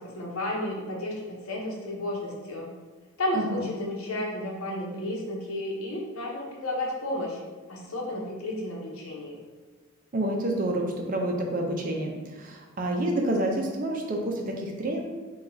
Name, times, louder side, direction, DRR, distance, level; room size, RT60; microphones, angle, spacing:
voice 1, 0.0-2.7 3.2-7.4 7.7-9.4, left 1 dB, 80° left, -2 dB, 0.8 m, -32 dB
voice 2, 3.3-3.6 10.1-15.0, right 1 dB, 40° right, 1 dB, 0.5 m, -28 dB
4.8 x 2.3 x 2.6 m, 1.3 s
head